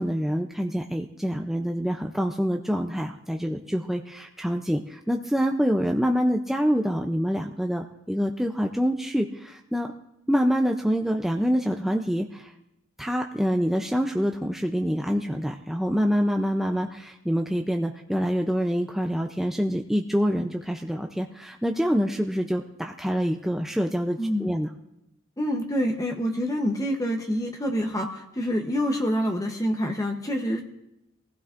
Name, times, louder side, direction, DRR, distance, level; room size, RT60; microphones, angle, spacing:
voice 1, 0.0-9.9 10.3-12.5 13.0-24.7, equal, ahead, 2 dB, 0.5 m, -26 dB
voice 2, 25.4-30.6, equal, 15° left, 2 dB, 0.8 m, -26 dB
22.5 x 15.5 x 2.5 m, 0.86 s
head